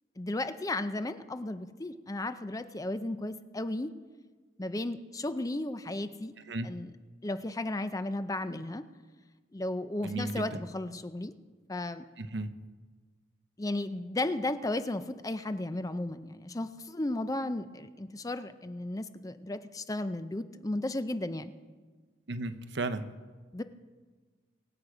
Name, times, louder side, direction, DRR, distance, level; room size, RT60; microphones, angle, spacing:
voice 1, 0.2-3.9 4.6-6.3 6.6-6.9 7.2-8.8 9.5-11.3 11.7-12.1 13.6-21.5 23.5-23.6, left 1 dB, 20° left, 11 dB, 0.5 m, -34 dB
voice 2, 10.0-10.5 12.2-12.5 22.3-23.1, right 2 dB, 70° right, 10 dB, 0.8 m, -34 dB
23.5 x 8.1 x 5.0 m, 1.4 s
head